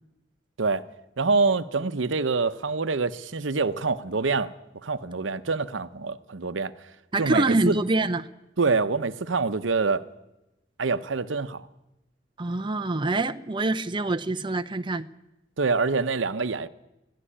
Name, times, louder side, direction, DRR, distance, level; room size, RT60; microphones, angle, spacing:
voice 1, 1.2-4.5 4.8-6.7 7.2-7.8 8.6-10.0 10.8-11.7 15.6-16.7, right 4 dB, 85° right, 0.8 m, -25 dB
voice 2, 7.1-8.2 12.4-15.1, right 2 dB, 25° right, 0.7 m, -25 dB
21.5 x 13.5 x 10.0 m
head